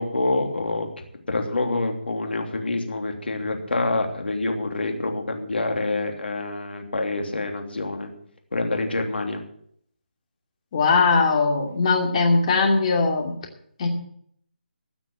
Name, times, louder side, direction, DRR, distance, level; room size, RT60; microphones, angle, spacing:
voice 1, 0.0-8.1 8.5-9.4, left 2 dB, 75° left, 3 dB, 3.0 m, -27 dB
voice 2, 10.7-13.3 13.8-13.9, left 4 dB, 35° left, 1 dB, 2.7 m, -20 dB
15.5 x 6.0 x 8.8 m, 0.66 s
figure-of-eight pair, 155°, 6 cm